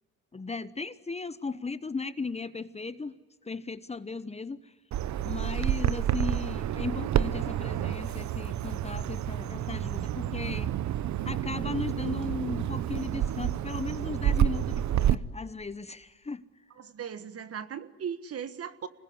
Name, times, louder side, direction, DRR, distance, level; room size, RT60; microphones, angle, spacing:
voice 1, 0.3-4.7 5.2-10.8 11.2-16.4, left 4 dB, 20° left, 1.0 m, -36 dB
Bird vocalization bird call bird song, 4.9-15.1, right 11 dB, 70° right, 0.9 m, -29 dB
voice 2, 16.8-18.9, right 8 dB, 50° right, 1.6 m, -38 dB
26.5 x 20.0 x 9.7 m
cardioid pair, 90°, 30 cm